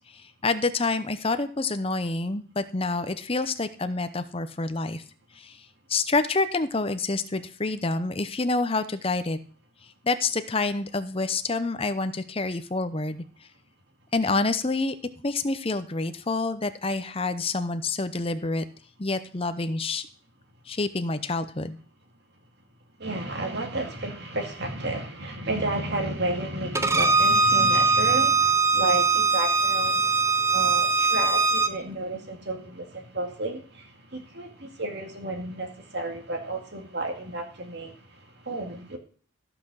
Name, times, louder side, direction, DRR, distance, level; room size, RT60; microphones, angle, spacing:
voice 1, 0.1-5.0 5.4-5.6 5.9-9.4 10.0-13.2 14.1-14.9 15.2-18.6 19.0-20.1 20.7-21.8, left 3 dB, 25° left, 0.7 m, -27 dB
voice 2, 23.0-30.1 30.5-38.0 38.4-39.0, right 2 dB, 50° right, 2.3 m, -32 dB
Bowed string instrument, 26.7-31.7, right 3 dB, 15° right, 0.5 m, -21 dB
14.0 x 5.9 x 6.4 m
head